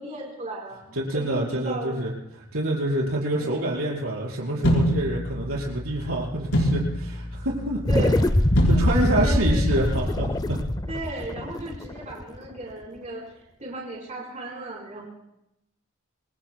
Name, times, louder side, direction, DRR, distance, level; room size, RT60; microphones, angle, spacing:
voice 1, 0.0-2.0 3.4-3.7 5.5-5.6 6.0-6.1 7.9-8.2 8.7-9.6 10.9-13.3 13.6-15.1, right 2 dB, 35° right, -3 dB, 4.4 m, -36 dB
voice 2, 0.9-8.0 8.7-10.6, right 1 dB, 70° right, -4 dB, 5.0 m, -27 dB
sound 1, 4.6-10.7, equal, 75° left, 4.7 m, -27 dB
sound 2, 7.9-12.5, left 1 dB, 15° left, 0.5 m, -23 dB
28.0 x 22.5 x 2.3 m, 0.83 s
head